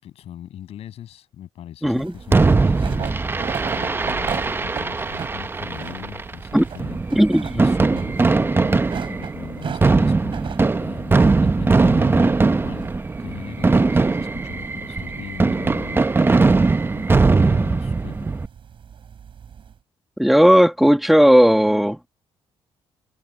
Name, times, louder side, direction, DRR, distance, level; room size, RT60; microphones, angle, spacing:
voice 1, 0.0-7.0 7.5-18.3, left 11 dB, 75° left, 7.4 m, -40 dB
voice 2, 1.8-2.1 6.5-6.6 7.2-7.7 20.2-22.0, equal, ahead, 1.9 m, -15 dB
sound 1, 1.9-19.7, right 7 dB, 55° right, 5.0 m, -38 dB
Fireworks, 2.3-18.5, right 3 dB, 20° right, 0.8 m, -20 dB
cardioid pair, 90°, 11 cm